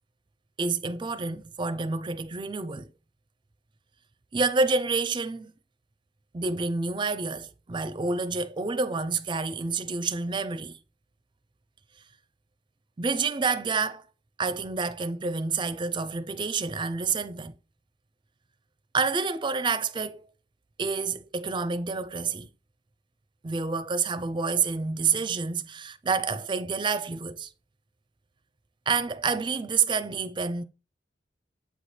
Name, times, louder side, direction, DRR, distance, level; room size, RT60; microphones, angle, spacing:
voice 1, 0.6-2.9 4.3-5.5 6.3-10.8 13.0-14.0 14.4-17.5 18.9-20.3 20.8-22.5 23.4-27.5 28.9-30.6, right 4 dB, 25° right, 0.4 m, -28 dB
8.3 x 3.2 x 4.2 m
head